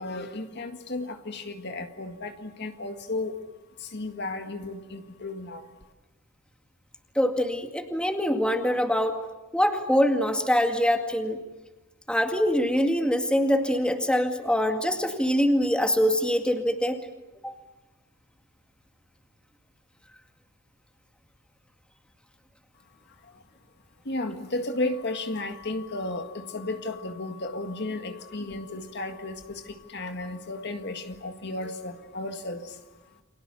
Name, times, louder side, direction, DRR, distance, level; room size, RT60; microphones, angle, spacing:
voice 1, 0.0-3.3 3.9-5.6 24.1-29.6 29.9-32.6, left 2 dB, 55° left, 7 dB, 1.9 m, -33 dB
voice 2, 7.2-9.2 9.5-11.4 12.1-17.0 17.4-17.5, equal, 5° left, 5 dB, 2.1 m, -24 dB
30.0 x 25.0 x 6.9 m, 1.1 s
head